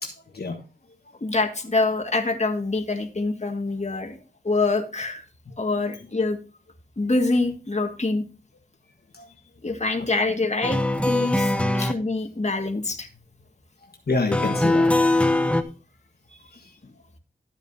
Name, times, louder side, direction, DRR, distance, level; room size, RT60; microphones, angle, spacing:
voice 1, 0.0-0.6 5.5-5.6 9.1-9.3 11.8-11.9 14.1-14.9 15.2-15.6 16.5-16.9, left 3 dB, 60° left, 1.4 m, -29 dB
voice 2, 1.2-4.2 4.4-5.2 5.6-6.4 7.0-8.2 9.6-13.1, left 3 dB, 40° left, 1.9 m, -25 dB
sound 1, 10.6-11.9 14.3-15.6, left 1 dB, 5° left, 0.9 m, -21 dB
12.5 x 8.9 x 2.7 m
wide cardioid pair, 70°, 19 cm